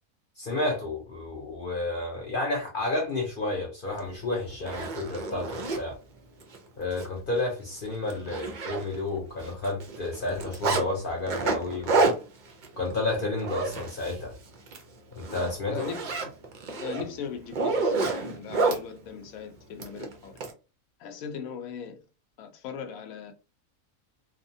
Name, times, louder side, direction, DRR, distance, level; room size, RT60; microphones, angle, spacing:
voice 1, 0.4-6.0 6.8-12.0 12.8-14.3 15.1-15.9, left 2 dB, 55° left, 0.6 m, -31 dB
Zipper (clothing), 4.0-4.1 4.5-5.8 6.4-6.6 6.9-7.1 7.4-7.5 7.9-9.2 9.4-10.8 11.3-14.2 14.6-14.8 15.2-18.8 19.8-20.5, right 3 dB, 60° right, 0.4 m, -29 dB
voice 2, 15.7-16.1 16.8-20.3 21.0-22.0 22.4-23.3, left 7 dB, 75° left, 1.0 m, -39 dB
2.9 x 2.1 x 2.6 m
omnidirectional pair, 1.5 m